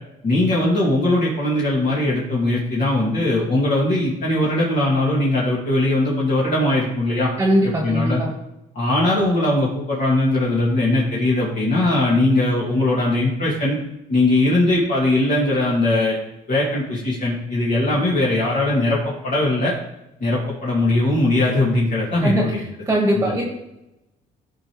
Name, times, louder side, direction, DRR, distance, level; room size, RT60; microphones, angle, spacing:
voice 1, 0.2-7.3 7.6-8.2 8.7-13.8 14.1-16.2 16.5-19.0 19.2-19.7 20.2-22.6 23.1-23.3, left 2 dB, 50° left, -6 dB, 2.3 m, -20 dB
voice 2, 7.4-8.3 22.2-22.4 22.9-23.4, equal, 15° right, 0 dB, 1.5 m, -20 dB
13.0 x 5.2 x 3.1 m, 0.92 s
cardioid pair, 110°, 17 cm